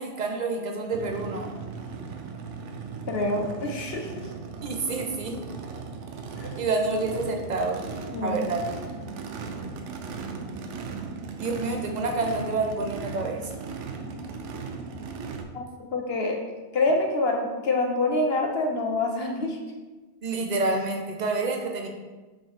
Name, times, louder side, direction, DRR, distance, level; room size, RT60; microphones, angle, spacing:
voice 1, 0.0-1.5 4.6-5.4 6.6-7.8 8.2-8.6 11.4-13.4 20.2-21.9, right 3 dB, 40° right, 2 dB, 0.9 m, -28 dB
Race car auto racing / Idling / Accelerating revving vroom, 0.9-15.4, right 4 dB, 85° right, 1.0 m, -37 dB
voice 2, 3.1-4.2 6.4-6.5 8.1-8.4 15.5-16.4 16.7-19.6, left 2 dB, 60° left, 2 dB, 1.1 m, -26 dB
5.7 x 5.2 x 3.5 m, 1.2 s
omnidirectional pair, 1.2 m